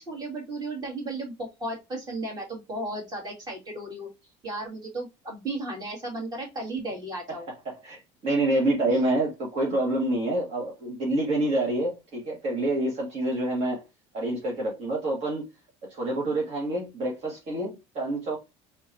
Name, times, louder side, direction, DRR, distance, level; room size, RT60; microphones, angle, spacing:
voice 1, 0.1-4.1 4.4-7.5, right 2 dB, 30° right, 2.6 m, -34 dB
voice 2, 7.7-13.8 14.1-15.5 15.9-18.4, right 1 dB, 55° right, 1.9 m, -27 dB
4.2 x 3.8 x 2.8 m
cardioid pair, 130°, 13 cm